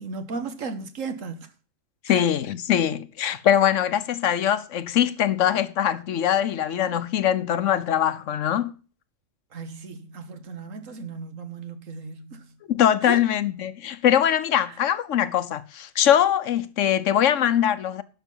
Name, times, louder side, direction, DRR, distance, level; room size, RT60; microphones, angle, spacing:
voice 1, 0.0-1.5 2.1-2.2 9.5-12.5 13.0-13.2 14.7-14.8, right 4 dB, 90° right, 1.7 m, -35 dB
voice 2, 2.0-8.7 12.7-18.0, left 10 dB, 75° left, 1.1 m, -22 dB
12.0 x 6.0 x 5.4 m
omnidirectional pair, 1.3 m